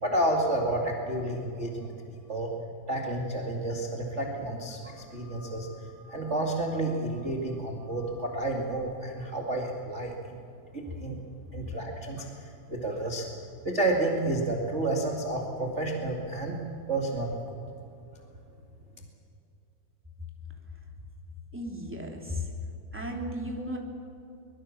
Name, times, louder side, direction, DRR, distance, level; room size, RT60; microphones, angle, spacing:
voice 1, 0.0-2.5 2.9-10.4 10.7-11.2 11.5-13.3 13.6-16.6 16.9-17.6, right 2 dB, 25° right, 0 dB, 1.5 m, -30 dB
voice 2, 21.5-22.5 22.9-23.8, left 1 dB, 5° right, 0 dB, 2.2 m, -34 dB
24.0 x 21.5 x 7.2 m, 2.7 s
omnidirectional pair, 4.5 m